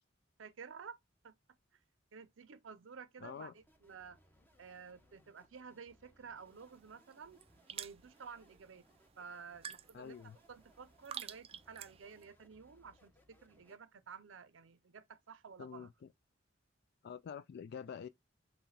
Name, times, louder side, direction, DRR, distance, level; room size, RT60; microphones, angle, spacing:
voice 1, 0.4-1.0 1.2-1.3 2.1-4.2 4.6-7.4 7.7-8.9 9.2-10.2 10.5-15.9, right 6 dB, 80° right, 0.6 m, -52 dB
voice 2, 3.2-3.5 9.9-10.4 15.6-15.9 17.0-18.1, left 7 dB, 55° left, 0.3 m, -46 dB
sound 1, 3.6-13.8, equal, 10° left, 0.9 m, -69 dB
sound 2, 6.5-12.2, right 8 dB, 30° right, 0.3 m, -51 dB
5.7 x 2.2 x 4.0 m
head